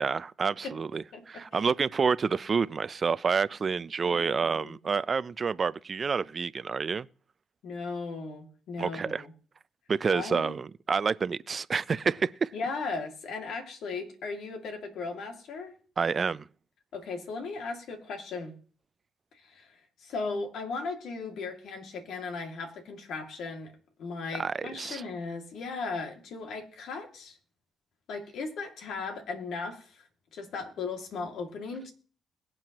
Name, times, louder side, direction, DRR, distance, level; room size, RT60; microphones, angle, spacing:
voice 1, 0.0-7.1 8.8-9.2 9.9-12.5 16.0-16.5 24.3-25.0, right 5 dB, 40° right, 0.5 m, -28 dB
voice 2, 1.1-1.7 4.0-4.8 7.6-9.3 10.1-10.5 12.5-15.7 16.9-18.5 19.3-19.7 20.0-23.7 24.0-27.4 28.1-30.0 30.3-31.9, left 4 dB, 75° left, 2.3 m, -37 dB
22.0 x 7.7 x 3.0 m
cardioid pair, 90°, 0 cm